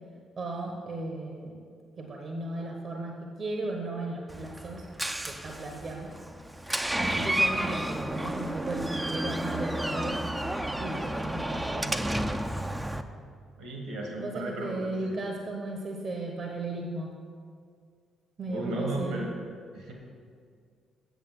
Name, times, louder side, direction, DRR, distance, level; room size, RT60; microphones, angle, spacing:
voice 1, 0.4-1.6 2.0-4.8 5.2-6.2 6.6-6.7 7.0-10.2 10.8-12.1 14.2-17.1 18.4-19.3, right 2 dB, 45° right, 2 dB, 1.1 m, -36 dB
Door, 4.3-13.0, right 1 dB, 10° right, 0.6 m, -31 dB
voice 2, 13.6-15.2 18.5-19.3 19.7-19.9, right 1 dB, 75° right, 0 dB, 1.7 m, -35 dB
8.3 x 7.3 x 5.9 m, 2.1 s
figure-of-eight pair, 45°, 0 cm